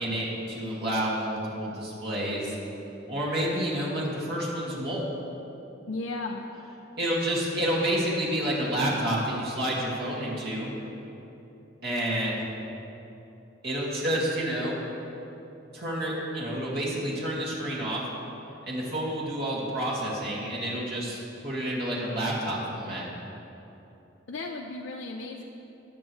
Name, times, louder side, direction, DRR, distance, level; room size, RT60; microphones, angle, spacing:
voice 1, 0.0-2.6 3.1-5.0 7.0-10.7 11.8-12.4 13.6-14.8 15.7-18.0 18.7-23.0, right 1 dB, 60° right, -5 dB, 2.1 m, -29 dB
voice 2, 5.9-6.5 24.3-25.4, left 3 dB, 75° left, 0 dB, 0.6 m, -35 dB
19.0 x 6.8 x 3.2 m, 3.0 s
head